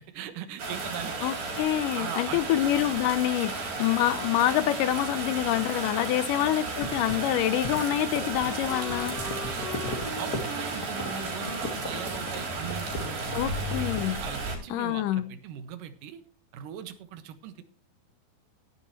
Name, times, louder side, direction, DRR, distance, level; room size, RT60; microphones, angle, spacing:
voice 1, 0.0-1.2 1.9-2.4 6.0-6.1 9.2-9.7 10.2-13.9 14.2-16.2 16.5-17.6, right 9 dB, 70° right, 2.8 m, -40 dB
sound 1, 0.6-14.6, right 3 dB, 85° right, 6.2 m, -34 dB
voice 2, 1.2-9.2 13.3-14.2 14.7-15.3, left 13 dB, 80° left, 1.9 m, -26 dB
Wind instrument woodwind instrument, 5.9-13.3, right 1 dB, 50° right, 0.6 m, -42 dB
sound 2, 6.7-14.1, left 2 dB, 35° left, 1.7 m, -38 dB
16.0 x 10.0 x 3.0 m
omnidirectional pair, 4.3 m